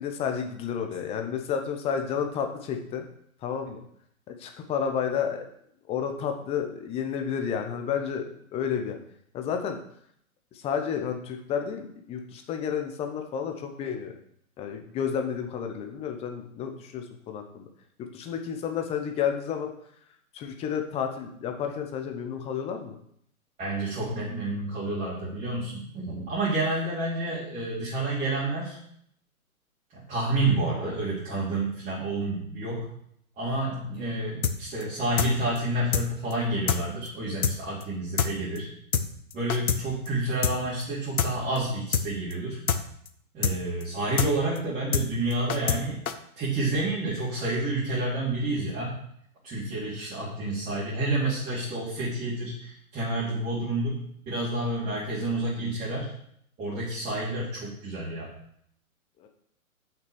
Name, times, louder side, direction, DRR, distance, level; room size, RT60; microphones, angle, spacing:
voice 1, 0.0-3.1 3.4-3.8 4.3-5.4 5.9-9.0 9.3-9.8 10.5-14.1 14.6-17.6 18.0-19.7 20.3-22.9 59.2-59.3, left 7 dB, 15° left, 4 dB, 0.8 m, -31 dB
voice 2, 23.6-28.8 29.9-32.9 33.4-38.7 39.3-42.6 43.3-46.0 46.4-49.0 49.4-56.1 56.6-58.3, right 2 dB, 15° right, -8 dB, 2.9 m, -29 dB
sound 1, 34.4-34.6 34.8-34.9 35.2-35.3 35.6-35.7 35.9-36.1 36.3-36.4 36.7-36.8 37.1-37.2 37.4-37.6 37.8-37.9 38.2-38.3 38.6-38.7 38.9-39.1 39.3-39.8 40.1-40.2 40.4-40.6 40.8-40.9 41.2-41.3 41.6-41.7 41.9-42.1 42.3-42.4 42.7-42.8 43.1-43.2 43.4-43.6 43.8-43.9 44.2-44.3 44.6-44.7 44.9-45.1 45.3-45.8 46.1-46.2, left 7 dB, 70° left, 1.0 m, -25 dB
6.5 x 6.0 x 7.0 m, 0.69 s
hypercardioid pair, 135°, 43 cm